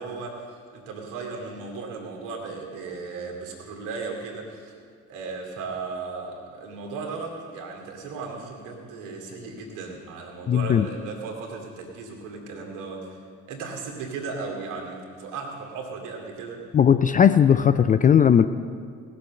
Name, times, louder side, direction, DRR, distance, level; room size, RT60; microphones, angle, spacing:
voice 1, 0.0-4.8 5.1-13.2 13.5-16.6, right 4 dB, 60° right, 0 dB, 2.7 m, -36 dB
voice 2, 10.5-10.9 16.7-18.5, left 8 dB, 25° left, 11 dB, 0.4 m, -17 dB
19.0 x 6.9 x 6.5 m, 2.1 s
figure-of-eight pair, 50°, 36 cm